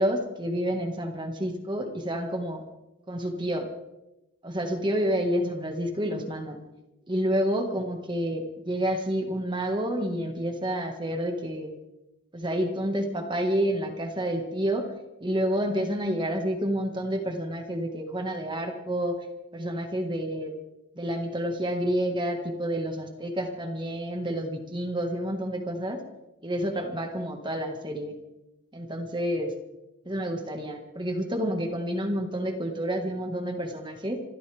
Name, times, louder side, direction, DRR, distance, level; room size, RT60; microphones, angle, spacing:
voice 1, 0.0-2.6 3.1-3.7 4.4-6.6 7.1-11.7 12.3-14.9 15.2-19.2 19.5-20.5 21.0-26.0 26.4-28.2 28.7-29.5 30.1-34.2, equal, 25° right, 4 dB, 1.7 m, -29 dB
27.0 x 13.5 x 3.5 m, 0.96 s
head